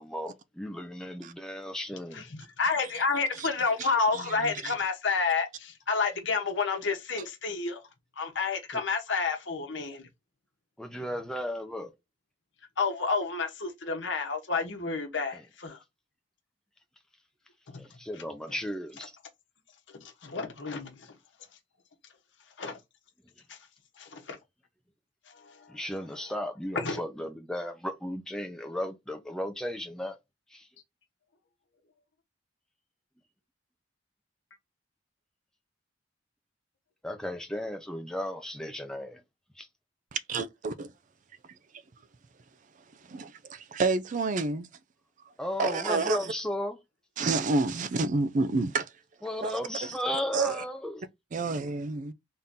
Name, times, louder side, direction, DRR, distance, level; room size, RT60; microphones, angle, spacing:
voice 1, 0.0-2.2 8.7-8.8 10.8-11.9 15.3-15.4 17.8-19.1 25.7-30.2 30.5-30.7 37.0-39.2 39.6-39.7 45.4-46.8 49.2-51.0, left 1 dB, 5° left, 0.6 m, -35 dB
voice 2, 2.6-7.8 8.2-10.1 12.8-15.8 17.7-17.8 20.0-21.1 22.6-22.8 23.5-23.6 24.0-24.4 25.5-25.6 26.7-27.0, left 4 dB, 75° left, 1.1 m, -30 dB
voice 3, 3.8-4.8 40.1-40.9 43.1-44.7 45.6-46.3 47.2-48.9 49.4-50.0 50.3-50.6 51.3-52.1, right 3 dB, 45° right, 0.4 m, -29 dB
3.7 x 2.8 x 3.6 m
head